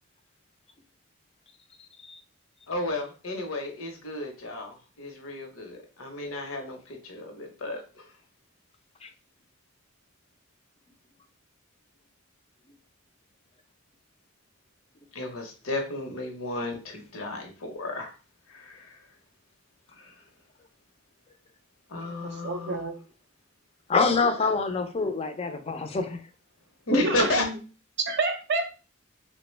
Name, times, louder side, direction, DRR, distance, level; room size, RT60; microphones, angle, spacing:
voice 1, 2.7-8.1 15.1-18.1 18.5-19.0 19.9-20.1 21.9-22.8 26.9-27.5, left 2 dB, 85° left, 3 dB, 0.8 m, -32 dB
voice 2, 22.1-22.9 26.9-27.5 28.0-28.7, right 3 dB, 55° right, 6 dB, 0.5 m, -28 dB
voice 3, 23.9-26.2, left 4 dB, 30° left, 7 dB, 0.4 m, -26 dB
3.2 x 2.1 x 3.1 m, 0.34 s
head